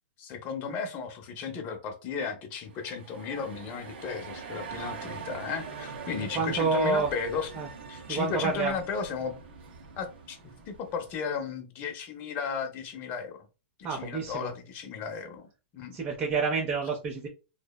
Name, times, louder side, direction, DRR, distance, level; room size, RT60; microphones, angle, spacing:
voice 1, 0.2-7.5 7.9-9.4 10.0-13.4 13.8-15.5 15.7-16.0, left 6 dB, 35° left, 5 dB, 0.6 m, -35 dB
sound 1, 2.6-11.3, right 5 dB, 70° right, 0.7 m, -43 dB
voice 2, 6.2-7.1 7.5-7.7 8.1-8.8 13.8-14.5 15.9-17.3, right 4 dB, 25° right, 1 dB, 0.5 m, -28 dB
2.7 x 2.0 x 2.2 m, 0.31 s
hypercardioid pair, 125°, 6 cm